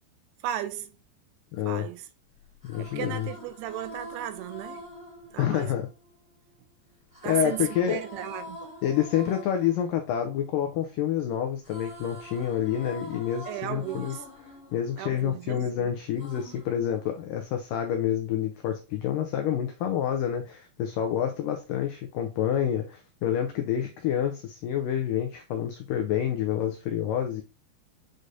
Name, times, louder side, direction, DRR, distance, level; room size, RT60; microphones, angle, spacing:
voice 1, 0.4-0.9 1.7-2.1 2.8-4.9 5.3-5.7 7.2-8.6 13.5-14.2 15.0-15.9, right 12 dB, 85° right, 2.5 m, -35 dB
voice 2, 1.5-1.9 2.6-3.3 5.4-5.9 7.3-8.0 8.8-14.2 14.7-27.4, left 10 dB, 85° left, 1.9 m, -28 dB
sound 1, 2.4-6.5 7.1-11.2 11.4-15.7 16.2-17.6, equal, ahead, 1.9 m, -45 dB
7.9 x 4.9 x 2.7 m
omnidirectional pair, 4.7 m